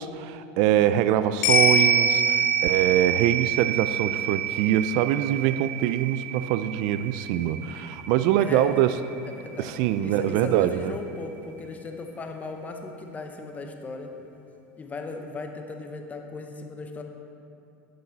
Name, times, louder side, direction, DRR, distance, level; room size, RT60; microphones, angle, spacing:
voice 1, 0.0-9.0 9.6-10.9, right 11 dB, 60° right, 12 dB, 0.3 m, -24 dB
sound 1, 1.4-10.0 10.3-10.4, right 4 dB, 75° left, 1.7 m, -26 dB
voice 2, 8.4-8.8 9.3-9.7 10.0-14.3 14.8-17.0, left 3 dB, 20° left, 4 dB, 0.9 m, -37 dB
11.5 x 5.9 x 4.0 m, 2.7 s
supercardioid pair, 115°, 8 cm